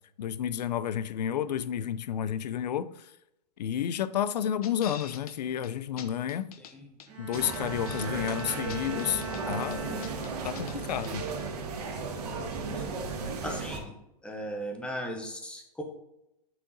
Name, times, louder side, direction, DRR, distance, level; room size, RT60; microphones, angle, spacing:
voice 1, 0.2-3.1 3.6-6.5 7.2-10.1 10.4-11.3, left 9 dB, 80° left, 16 dB, 0.5 m, -31 dB
sound 1, 4.6-5.4 5.6-5.7 6.0-6.7 7.0-8.1 8.4-9.4 9.7-10.8 11.0-11.1, left 9 dB, 65° left, 0.8 m, -45 dB
Bowed string instrument, 7.1-10.6 11.1-11.5, right 2 dB, 25° right, 2.0 m, -41 dB
sound 2, 7.3-13.8, right 4 dB, 70° right, 1.6 m, -35 dB
voice 2, 12.5-13.0 13.4-13.9 14.2-15.8, equal, 5° left, 2 dB, 1.1 m, -37 dB
8.8 x 3.7 x 4.0 m, 0.86 s
hypercardioid pair, 130°, 21 cm